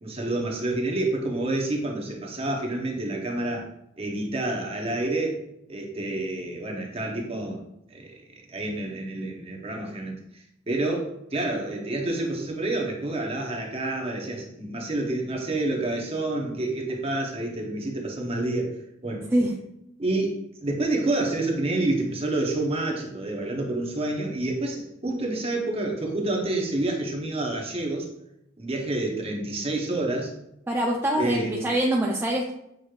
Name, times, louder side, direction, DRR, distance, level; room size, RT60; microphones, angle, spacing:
voice 1, 0.0-3.7 4.0-5.4 5.7-7.6 7.9-18.7 19.0-19.2 20.0-20.4 20.6-28.1 28.6-30.3 31.2-31.6, right 2 dB, 30° right, 0 dB, 0.8 m, -28 dB
voice 2, 30.7-32.5, right 1 dB, 10° right, -1 dB, 0.3 m, -24 dB
6.2 x 3.0 x 2.4 m, 0.81 s
head